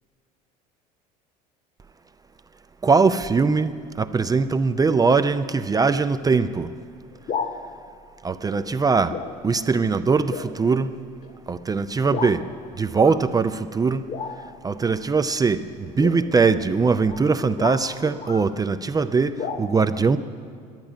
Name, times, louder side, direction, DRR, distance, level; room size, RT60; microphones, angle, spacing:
voice 1, 2.8-3.7 4.0-6.7 8.2-9.2 9.4-10.9 11.5-12.4 12.8-14.1 14.6-20.2, right 4 dB, 20° right, 11 dB, 0.4 m, -21 dB
sound 1, 7.1-7.6 8.5-8.8 9.1-9.4 9.7-9.8 10.3-10.5 11.2-11.4 12.1-12.4 12.9-13.2 14.1-14.6 15.9-18.5 19.4-19.6, left 6 dB, 40° left, 1.3 m, -33 dB
11.0 x 10.5 x 9.6 m, 2.2 s
hypercardioid pair, 65°, 21 cm